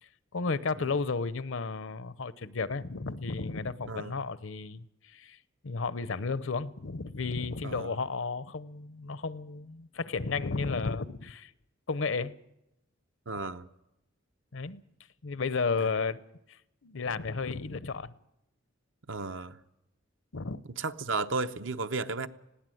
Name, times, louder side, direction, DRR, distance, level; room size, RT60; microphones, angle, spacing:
voice 1, 0.3-5.4 5.6-11.5 11.9-12.3 14.5-14.8 15.2-16.2 16.5-18.2 20.3-20.6, left 4 dB, 70° left, 0.7 m, -33 dB
voice 2, 13.3-13.7 15.8-15.9 19.1-19.6 20.8-22.3, right 3 dB, 65° right, 0.9 m, -33 dB
20.5 x 16.5 x 7.8 m
head